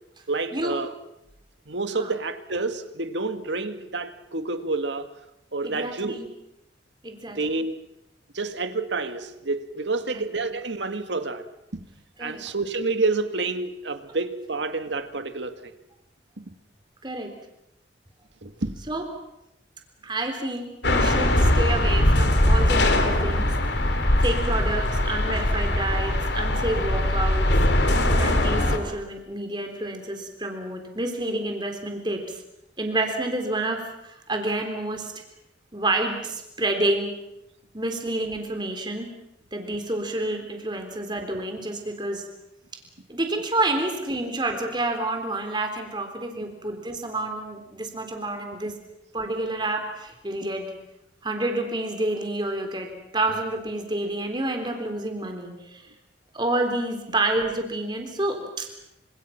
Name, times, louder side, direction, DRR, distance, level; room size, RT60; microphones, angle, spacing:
voice 1, 0.3-0.9 1.7-5.1 5.5-6.2 7.4-7.7 8.3-11.5 11.7-11.9 12.2-15.7 16.4-16.5 18.4-18.8 48.7-48.8, right 3 dB, 75° right, 8 dB, 2.0 m, -29 dB
voice 2, 5.6-6.3 7.0-7.6 10.1-10.2 12.2-12.4 17.0-17.3 18.9-19.0 20.0-23.5 24.2-27.5 28.2-32.4 32.8-35.1 35.7-37.2 37.7-39.1 39.5-42.3 43.1-48.7 49.1-50.7 51.2-55.9 56.3-58.7, right 2 dB, 25° right, 5 dB, 3.8 m, -29 dB
sound 1, 20.8-28.8, left 1 dB, 65° left, 3.0 m, -21 dB
29.5 x 26.5 x 6.0 m, 0.86 s
head